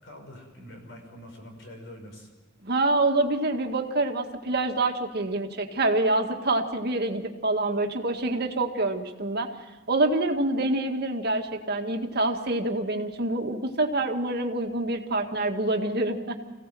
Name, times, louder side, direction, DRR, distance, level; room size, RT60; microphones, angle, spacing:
voice 1, 0.0-2.3, left 1 dB, 60° left, 3 dB, 5.6 m, -45 dB
voice 2, 2.6-9.5 9.9-16.4, right 2 dB, 50° right, 4 dB, 1.8 m, -26 dB
25.5 x 17.0 x 7.6 m, 1.2 s
head